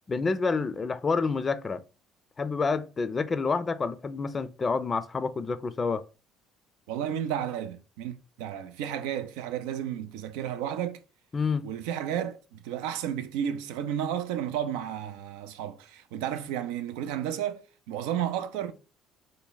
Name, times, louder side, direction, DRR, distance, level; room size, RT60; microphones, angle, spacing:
voice 1, 0.1-1.8 2.4-6.0 11.3-11.6, left 4 dB, 30° left, 0.4 m, -28 dB
voice 2, 6.9-11.0 11.6-18.7, right 10 dB, 90° right, 0.4 m, -32 dB
3.4 x 2.1 x 3.9 m
supercardioid pair, 95°, 0 cm